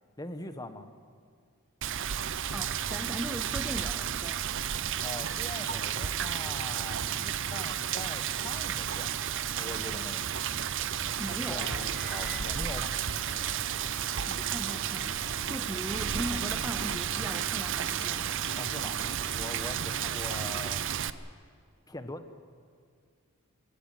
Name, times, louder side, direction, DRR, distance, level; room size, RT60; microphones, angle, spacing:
voice 1, 0.2-0.9 5.0-10.3 11.2-12.9 18.6-19.0 19.3-20.8 21.9-22.3, left 2 dB, 15° left, 8 dB, 1.2 m, -42 dB
Rain, 1.8-21.1, right 9 dB, 55° right, 0.7 m, -32 dB
voice 2, 2.5-4.4 11.1-11.8 14.3-15.2 15.5-18.3, equal, 5° right, 9 dB, 0.5 m, -39 dB
sound 1, 8.9-20.7, equal, 45° left, 6.6 m, -46 dB
23.5 x 16.5 x 9.0 m, 2.1 s
head